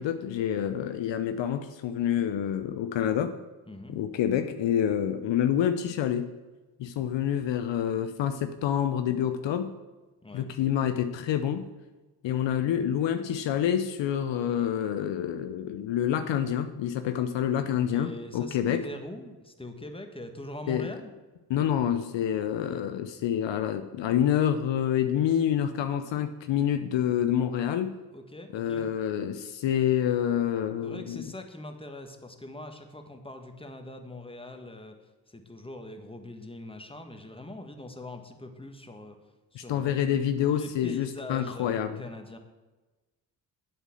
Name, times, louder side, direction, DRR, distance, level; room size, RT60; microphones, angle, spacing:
voice 1, 0.0-3.3 3.9-6.3 6.8-9.7 10.3-11.6 12.2-18.9 20.7-20.9 21.5-27.9 28.5-31.3 39.5-42.0, left 9 dB, 65° left, 9 dB, 0.7 m, -27 dB
voice 2, 3.7-4.0 10.2-10.5 17.9-21.1 28.1-28.9 30.8-35.0 35.3-39.2 39.5-40.0 40.4-42.4, left 1 dB, 10° left, 5 dB, 1.6 m, -42 dB
8.0 x 5.9 x 7.6 m, 1.2 s
hypercardioid pair, 40°, 47 cm